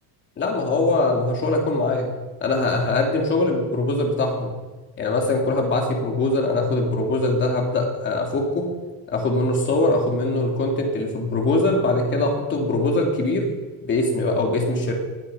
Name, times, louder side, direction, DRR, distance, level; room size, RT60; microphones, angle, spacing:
voice 1, 0.4-2.1 2.4-4.6 5.0-8.6 9.1-13.4 13.8-14.9, left 2 dB, 25° left, 1 dB, 3.1 m, -22 dB
20.5 x 9.2 x 5.8 m, 1.2 s
cardioid pair, 170°, 45 cm